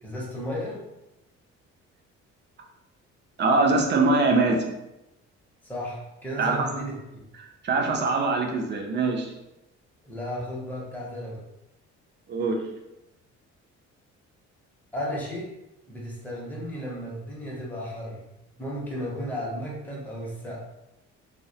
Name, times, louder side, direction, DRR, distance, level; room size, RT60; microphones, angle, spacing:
voice 1, 0.0-0.8 5.6-7.3 10.0-11.4 14.9-15.5 15.9-18.3 18.6-20.6, equal, 5° left, -4 dB, 0.7 m, -34 dB
voice 2, 3.4-4.6 6.4-6.5 7.6-9.3 12.3-12.6, right 3 dB, 40° right, 1 dB, 0.5 m, -22 dB
2.2 x 2.1 x 2.7 m, 0.92 s
cardioid pair, 105°, 29 cm